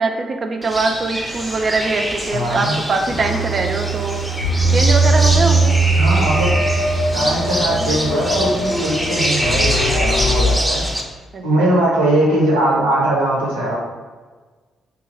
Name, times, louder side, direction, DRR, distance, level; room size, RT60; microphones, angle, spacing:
voice 1, 0.0-4.2 4.7-5.8 11.3-11.7, right 3 dB, 45° right, 4 dB, 0.4 m, -22 dB
sound 1, 0.6-11.0, equal, 10° right, 0.7 m, -25 dB
voice 2, 2.3-2.8 6.0-6.6 7.1-10.8 11.4-13.8, right 1 dB, 80° right, -4 dB, 0.7 m, -20 dB
Bass guitar, 3.1-9.4, right 10 dB, 85° left, 0.7 m, -32 dB
sound 2, 4.4-10.6, right 2 dB, 50° left, 0.4 m, -19 dB
2.9 x 2.4 x 3.9 m, 1.4 s
figure-of-eight pair, 40°, 0 cm